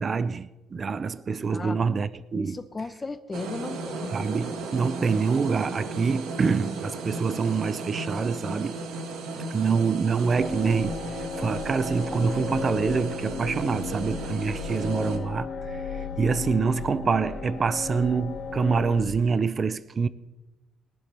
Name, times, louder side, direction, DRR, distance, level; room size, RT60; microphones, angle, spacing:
voice 1, 0.0-2.6 4.1-8.8 9.3-20.1, right 5 dB, 25° right, 0.4 m, -26 dB
voice 2, 1.5-1.8 2.3-4.1, left 3 dB, 15° left, 0.7 m, -35 dB
sound 1, 3.3-15.2, right 3 dB, 85° right, 1.7 m, -35 dB
sound 2, 10.4-19.0, left 5 dB, 45° left, 2.0 m, -35 dB
22.5 x 11.5 x 3.4 m
cardioid pair, 170°, 0 cm